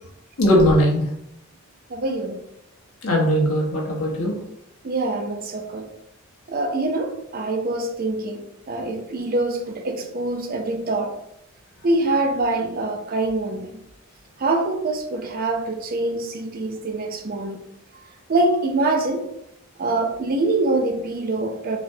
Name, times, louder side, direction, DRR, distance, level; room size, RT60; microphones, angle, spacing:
voice 1, 0.4-1.0 3.0-4.4, equal, 80° left, -2 dB, 1.0 m, -19 dB
voice 2, 1.9-2.4 4.8-5.9 6.5-8.4 8.7-11.1 11.8-13.7 14.4-17.6 18.3-19.2 19.8-21.8, right 2 dB, 45° right, 4 dB, 0.4 m, -24 dB
4.1 x 2.1 x 2.7 m, 0.79 s
head